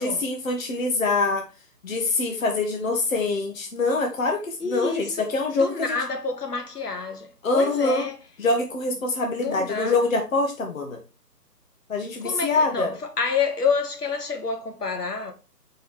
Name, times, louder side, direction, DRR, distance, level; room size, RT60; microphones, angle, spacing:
voice 1, 0.0-1.5 1.8-6.0 7.4-8.0 8.4-11.0 11.9-12.9, left 3 dB, 55° left, 1.2 m, -24 dB
voice 2, 4.6-8.2 9.4-10.0 12.2-15.3, left 5 dB, 70° left, 1.5 m, -28 dB
6.5 x 4.6 x 3.1 m
figure-of-eight pair, 145°, 48 cm